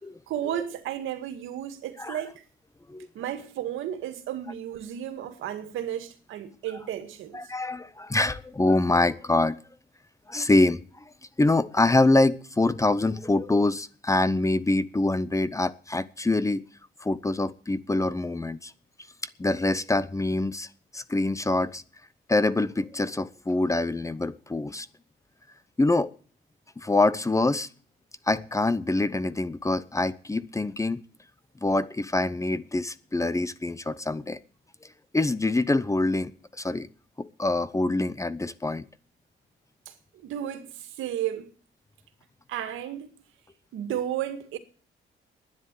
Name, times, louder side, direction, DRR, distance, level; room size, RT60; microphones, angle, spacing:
voice 1, 0.3-2.4 3.2-7.4 39.9-40.0 40.2-41.5 42.5-43.1 43.7-44.6, right 11 dB, 85° right, 2.1 m, -33 dB
voice 2, 7.3-9.6 10.3-10.8 11.4-16.6 17.0-18.7 19.4-20.7 20.9-21.8 22.3-24.9 25.8-26.1 26.8-27.7 28.3-31.0 31.6-34.4 35.1-36.9 37.2-38.8, left 2 dB, 15° left, 0.8 m, -25 dB
11.0 x 10.0 x 8.4 m
cardioid pair, 90°, 20 cm